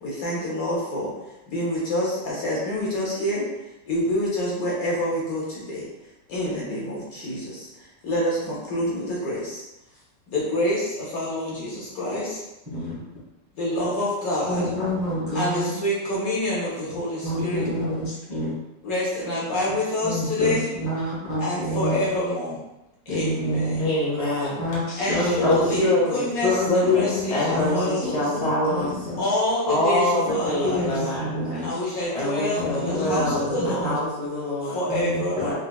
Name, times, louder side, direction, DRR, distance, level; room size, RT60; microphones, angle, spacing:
voice 1, 0.0-1.1 1.5-3.5 3.9-5.9 6.3-9.6 10.3-12.4 13.6-14.7 15.3-17.7 18.8-20.7 21.4-22.6 23.1-23.8 25.0-28.2 29.2-30.9 31.6-33.9 34.7-35.5, left 1 dB, 65° left, -5 dB, 1.1 m, -27 dB
voice 2, 14.5-15.7 17.2-18.5 20.0-22.0 23.1-23.8 24.6-25.8 26.4-29.3 30.2-30.3 30.6-31.8 32.6-33.9 34.9-35.5, left 1 dB, 20° right, -8 dB, 0.5 m, -27 dB
voice 3, 23.8-24.6 25.4-26.3 26.7-28.9 29.7-31.3 32.1-34.8 35.4-35.5, left 1 dB, 30° left, -7 dB, 0.8 m, -25 dB
4.1 x 2.3 x 2.2 m, 0.95 s
omnidirectional pair, 1.9 m